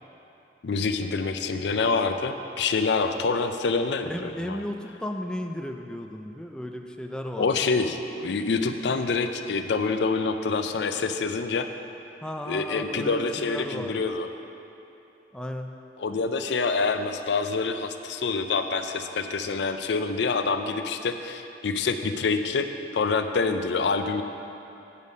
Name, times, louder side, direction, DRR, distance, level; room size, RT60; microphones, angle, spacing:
voice 1, 0.6-4.6 7.4-11.7 12.5-14.3 16.0-22.7 22.9-24.2, left 4 dB, 75° left, 8 dB, 0.5 m, -26 dB
voice 2, 4.1-7.7 12.2-14.1 15.3-15.7, left 1 dB, 5° left, 3 dB, 0.3 m, -34 dB
8.2 x 7.2 x 5.3 m, 2.8 s
head